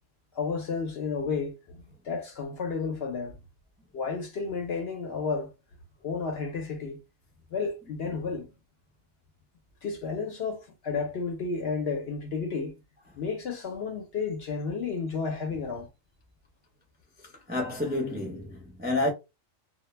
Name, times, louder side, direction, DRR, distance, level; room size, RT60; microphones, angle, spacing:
voice 1, 0.3-3.4 3.9-5.5 6.0-7.0 7.5-8.5 9.8-12.8 13.2-15.9, left 5 dB, 65° left, 0.6 m, -32 dB
voice 2, 17.5-19.1, left 2 dB, 15° right, 0.3 m, -29 dB
2.1 x 2.1 x 3.1 m
omnidirectional pair, 1.4 m